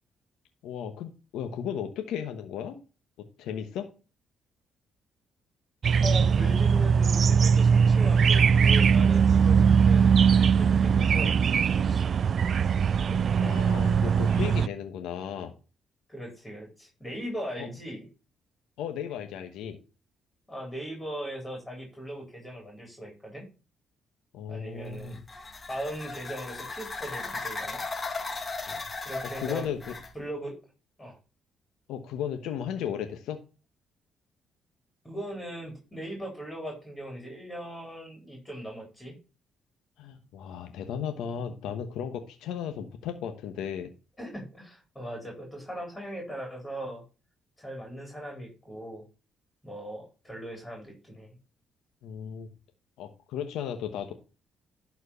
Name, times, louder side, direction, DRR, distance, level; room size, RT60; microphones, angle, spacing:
voice 1, 0.6-2.8 3.4-3.9 13.4-15.5 17.6-17.7 18.8-19.8 24.3-25.2 28.7-28.8 29.2-29.9 31.9-33.4 40.0-43.9 52.0-52.5 53.0-54.1, left 8 dB, 90° left, 6 dB, 1.1 m, -35 dB
sound 1, 5.8-14.7, right 6 dB, 50° right, 0.4 m, -21 dB
voice 2, 6.0-11.4 11.7-12.1 13.0-13.3 16.1-18.1 20.5-23.5 24.5-25.2 25.7-27.8 29.1-29.7 30.1-30.6 31.0-31.2 35.0-39.2 44.2-47.0 47.6-49.0 49.6-51.3, right 1 dB, 15° left, 1 dB, 4.0 m, -39 dB
sound 2, 24.9-30.1, left 3 dB, 30° left, 1.8 m, -37 dB
11.5 x 4.5 x 5.6 m, 0.33 s
cardioid pair, 90°, 0 cm